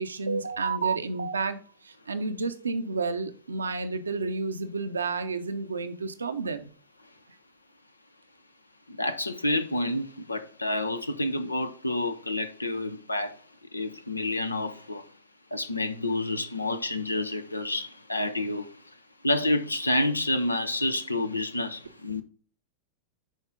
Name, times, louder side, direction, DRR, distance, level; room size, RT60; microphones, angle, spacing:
voice 1, 0.0-1.6 1.8-6.6, right 4 dB, 75° right, 0.8 m, -30 dB
voice 2, 8.9-13.4 13.7-15.1 15.5-18.9 19.2-22.2, left 1 dB, 85° left, 0.7 m, -29 dB
10.5 x 4.4 x 3.8 m
figure-of-eight pair, 90°, 0 cm